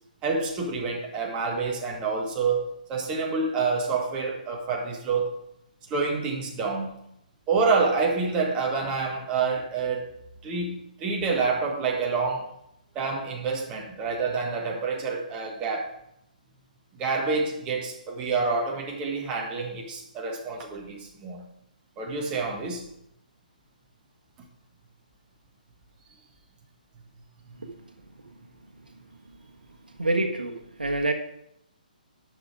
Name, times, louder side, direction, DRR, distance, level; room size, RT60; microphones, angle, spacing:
voice 1, 0.2-2.6 2.9-5.3 5.9-6.9 7.5-10.1 10.4-12.5 12.9-15.9 17.0-21.5 22.0-22.9, right 4 dB, 20° right, 1 dB, 1.5 m, -27 dB
voice 2, 30.0-30.5 30.8-31.1, right 2 dB, 80° right, 4 dB, 1.3 m, -25 dB
11.0 x 6.5 x 4.8 m, 0.79 s
figure-of-eight pair, 135°, 5 cm